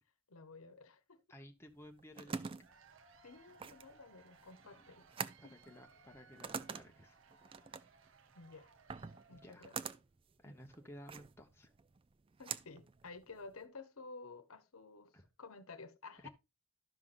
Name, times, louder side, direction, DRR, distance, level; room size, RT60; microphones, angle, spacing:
voice 1, 0.3-1.2 3.2-5.0 5.4-5.6 8.3-8.7 9.3-9.8 12.4-16.3, left 3 dB, 85° left, 1.0 m, -53 dB
voice 2, 1.3-2.6 5.4-7.2 9.3-9.7 10.4-11.7 15.1-15.2 16.2-16.3, equal, 10° left, 1.0 m, -55 dB
sound 1, 1.7-13.6, right 5 dB, 25° right, 0.3 m, -47 dB
Cheering / Applause / Crowd, 2.4-10.0, right 4 dB, 65° right, 0.8 m, -64 dB
12.5 x 5.7 x 2.5 m
head